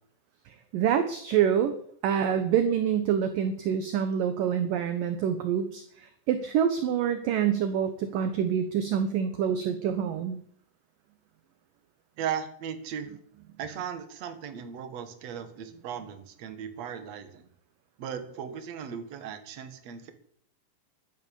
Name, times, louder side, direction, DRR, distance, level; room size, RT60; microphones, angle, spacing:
voice 1, 0.5-1.7 2.0-10.4, right 8 dB, 70° right, 10 dB, 2.1 m, -26 dB
voice 2, 12.2-13.1 13.6-17.5 18.0-20.1, right 8 dB, 50° right, 9 dB, 2.2 m, -37 dB
14.0 x 12.0 x 7.0 m, 0.62 s
omnidirectional pair, 5.2 m